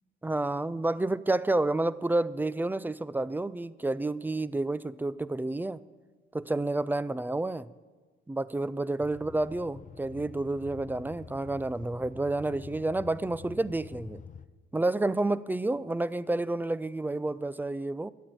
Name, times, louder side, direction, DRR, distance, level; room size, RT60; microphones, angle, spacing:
voice 1, 0.2-5.8 6.3-7.7 8.3-14.2 14.7-18.1, right 2 dB, 10° right, 0.4 m, -30 dB
sound 1, 9.0-14.5, left 6 dB, 40° left, 0.7 m, -47 dB
11.5 x 8.7 x 9.2 m
cardioid pair, 90°, 20 cm